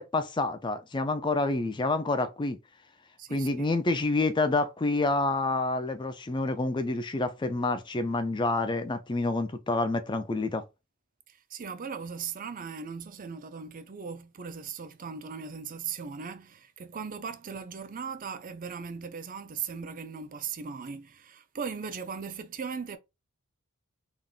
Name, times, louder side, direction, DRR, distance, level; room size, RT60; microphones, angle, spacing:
voice 1, 0.0-2.6 3.3-10.6, left 2 dB, 20° left, 0.4 m, -28 dB
voice 2, 3.2-3.7 11.3-23.0, right 6 dB, 35° right, 0.5 m, -38 dB
3.7 x 3.5 x 2.4 m
head